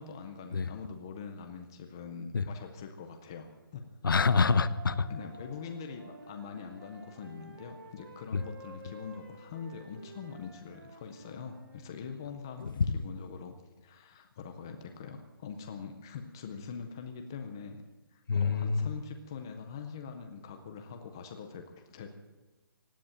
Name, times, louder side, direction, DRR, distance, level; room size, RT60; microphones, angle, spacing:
voice 1, 0.0-3.8 5.1-13.5 13.8-17.8 18.1-22.1, left 6 dB, 10° left, 5 dB, 0.4 m, -43 dB
voice 2, 4.0-5.1 8.3-8.4 12.6-13.0 18.3-18.9, left 4 dB, 65° left, 15 dB, 0.8 m, -26 dB
sound 1, 4.1-8.9, right 2 dB, 25° right, 4.4 m, -53 dB
Wind instrument woodwind instrument, 5.5-12.0, right 1 dB, 75° right, 6.9 m, -53 dB
17.0 x 9.6 x 8.8 m, 1.2 s
hypercardioid pair, 180°, 12 cm